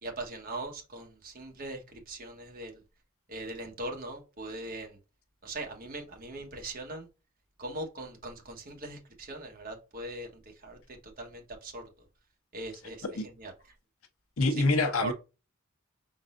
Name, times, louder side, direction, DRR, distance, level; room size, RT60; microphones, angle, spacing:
voice 1, 0.0-2.7 3.3-5.0 5.4-7.1 7.6-10.3 10.6-11.8 12.5-13.0 13.4-13.5 15.0-15.1, right 2 dB, 40° right, 1.2 m, -40 dB
voice 2, 14.4-15.1, left 2 dB, 70° left, 0.8 m, -25 dB
5.2 x 3.8 x 2.5 m
head